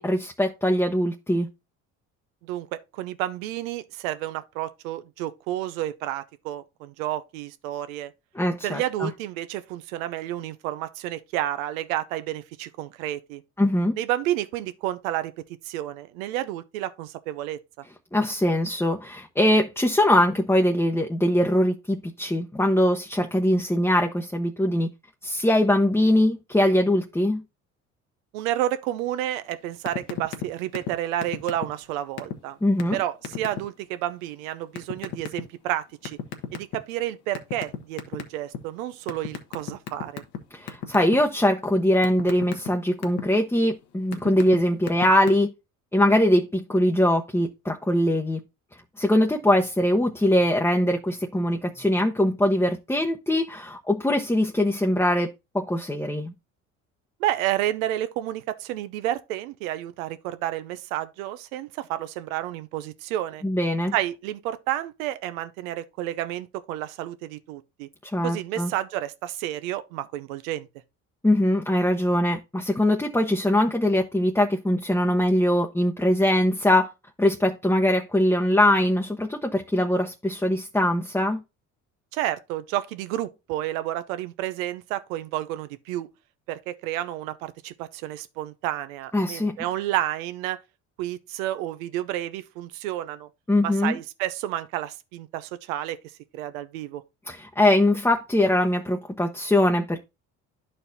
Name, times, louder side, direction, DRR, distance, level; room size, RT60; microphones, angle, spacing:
voice 1, 0.0-1.5 8.3-9.1 13.6-14.0 18.1-24.9 25.2-27.4 32.6-33.0 40.5-45.5 45.9-48.4 49.0-55.3 55.5-56.3 63.4-63.9 68.0-68.7 71.2-76.9 77.2-81.4 89.1-89.6 93.5-94.0 97.3-100.0, left 1 dB, 5° left, 0.9 m, -22 dB
voice 2, 2.4-8.1 8.6-13.4 14.0-15.3 15.6-17.6 28.3-32.6 32.9-36.2 36.5-40.2 57.2-63.4 63.9-67.9 68.2-70.7 82.1-86.1 86.5-90.6 91.0-93.3 93.6-96.0 96.3-97.0, right 13 dB, 80° right, 0.7 m, -30 dB
sound 1, 29.9-30.5 30.7-30.9 31.2-31.8 32.2-32.3 32.8-32.9 33.2-33.6 34.8-35.4 36.1-36.9 37.3-38.6 39.1-40.4 40.7-41.2 41.6-43.2 43.8-44.6 44.8-45.3, left 9 dB, 65° left, 1.4 m, -31 dB
12.0 x 4.4 x 2.7 m
hypercardioid pair, 60°, 40 cm